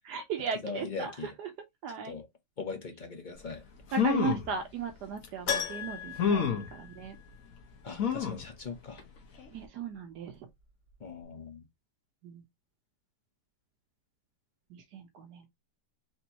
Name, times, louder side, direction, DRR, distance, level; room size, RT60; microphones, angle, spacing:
voice 1, 0.1-1.1 1.4-1.5 1.8-2.2 3.9-7.2 9.5-10.3 12.2-12.4 14.7-15.5, right 6 dB, 75° right, 1.3 m, -36 dB
voice 2, 0.6-1.3 2.0-2.3 2.6-3.6 7.8-9.0 11.0-11.6, left 4 dB, 35° left, 0.9 m, -40 dB
sound 1, 3.5-3.6 3.9-4.5 5.2-5.3 6.2-6.7 8.0-8.5 9.0-9.1 9.4-9.5, left 7 dB, 55° left, 1.4 m, -28 dB
Keyboard (musical), 5.5-7.5 7.8-7.9 10.6-10.7 10.9-11.0, left 7 dB, 80° left, 1.6 m, -36 dB
4.4 x 3.0 x 2.8 m
omnidirectional pair, 1.8 m